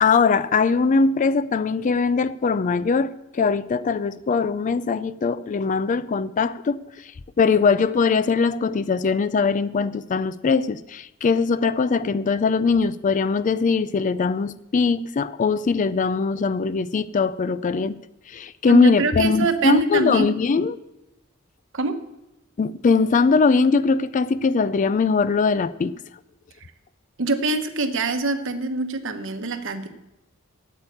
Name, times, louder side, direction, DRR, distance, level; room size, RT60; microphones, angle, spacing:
voice 1, 0.0-6.8 7.4-18.0 18.3-20.8 22.6-25.9, left 4 dB, 35° left, 0.3 m, -21 dB
voice 2, 18.7-20.3 21.7-22.0 27.2-29.9, right 3 dB, 65° right, 1.0 m, -24 dB
8.5 x 8.0 x 8.5 m
head